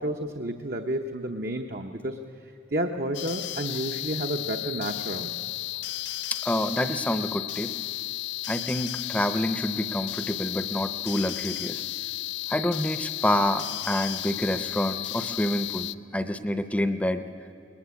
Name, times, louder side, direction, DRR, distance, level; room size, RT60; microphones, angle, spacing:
voice 1, 0.0-2.2 2.7-5.3, right 1 dB, 50° right, 3 dB, 1.0 m, -31 dB
sound 1, 3.1-15.9, left 15 dB, 70° left, 0.5 m, -34 dB
voice 2, 6.4-7.7 8.5-11.8 12.5-15.9 16.1-17.2, left 1 dB, 5° left, 10 dB, 0.7 m, -27 dB
21.0 x 20.5 x 8.4 m, 2.8 s
head